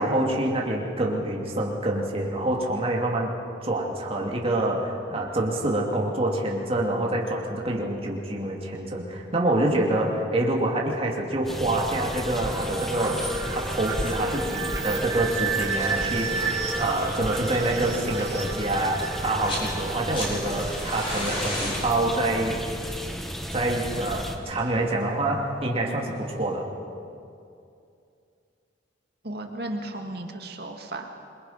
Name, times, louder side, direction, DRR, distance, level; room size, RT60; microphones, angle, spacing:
voice 1, 0.0-3.3 3.6-22.6 23.5-26.7, right 1 dB, 30° right, -2 dB, 2.7 m, -26 dB
sound 1, 11.4-24.4, equal, ahead, 1.4 m, -34 dB
sound 2, 12.4-21.0, right 4 dB, 15° right, 3.7 m, -32 dB
sound 3, 19.3-19.7 20.0-24.8 26.1-26.2, left 1 dB, 30° left, 6.1 m, -34 dB
voice 2, 29.2-31.1, right 1 dB, 55° right, 3 dB, 2.2 m, -34 dB
27.0 x 23.0 x 5.9 m, 2.5 s
head